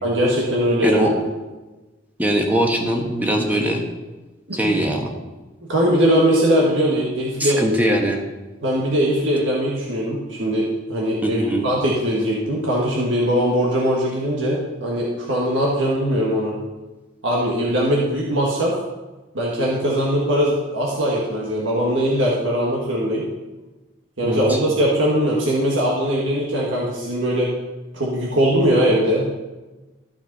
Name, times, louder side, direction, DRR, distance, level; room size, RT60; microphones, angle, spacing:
voice 1, 0.0-1.1 4.5-4.8 5.7-7.6 8.6-16.5 17.2-18.7 19.3-23.2 24.2-27.5 27.9-29.3, equal, 80° right, -3 dB, 1.7 m, -20 dB
voice 2, 0.8-1.1 2.2-3.8 4.5-5.1 7.4-8.2 11.2-11.7 24.2-24.6, right 1 dB, 10° right, 1 dB, 1.2 m, -21 dB
13.5 x 6.0 x 4.1 m, 1.2 s
head